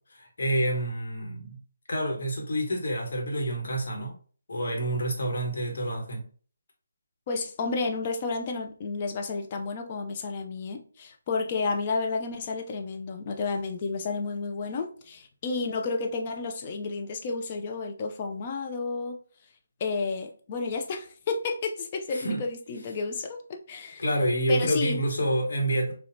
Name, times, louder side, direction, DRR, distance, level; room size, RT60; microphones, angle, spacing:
voice 1, 0.1-1.6 1.9-4.1 4.5-6.3 22.1-22.4 24.0-25.9, right 1 dB, 55° left, 1.2 m, -28 dB
voice 2, 7.3-19.2 19.8-24.0 24.5-25.0, left 4 dB, 30° left, 0.5 m, -31 dB
4.1 x 2.3 x 2.7 m
figure-of-eight pair, 150°, 0 cm